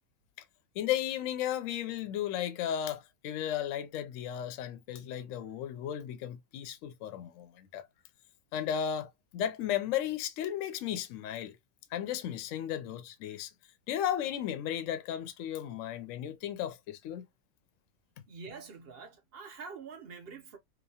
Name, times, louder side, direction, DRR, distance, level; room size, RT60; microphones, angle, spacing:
voice 1, 0.8-7.9 8.5-11.6 11.9-13.5 13.9-17.3, left 10 dB, 70° left, 0.8 m, -35 dB
voice 2, 18.3-20.6, right 5 dB, 60° right, 0.6 m, -46 dB
2.9 x 2.1 x 2.7 m
omnidirectional pair, 1.7 m